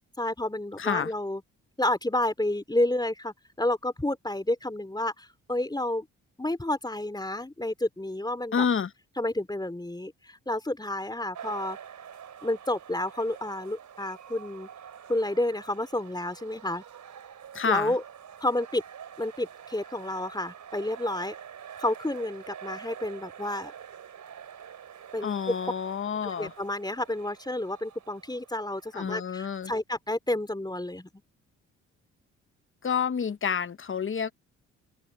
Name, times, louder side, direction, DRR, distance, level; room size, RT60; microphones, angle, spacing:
voice 1, 0.2-1.4 1.8-6.1 6.4-8.6 9.2-11.8 12.4-14.7 15.1-16.8 17.7-18.0 18.4-18.8 19.2-21.4 21.8-23.7 25.1-25.6 26.2-31.1, left 1 dB, 10° left, 3.7 m, -30 dB
voice 2, 0.8-1.1 8.5-8.9 17.5-17.9 25.2-26.5 28.9-29.7 32.8-34.3, left 7 dB, 40° left, 1.2 m, -28 dB
sound 1, 11.3-28.9, right 8 dB, 60° right, 4.9 m, -46 dB
hypercardioid pair, 50°, 33 cm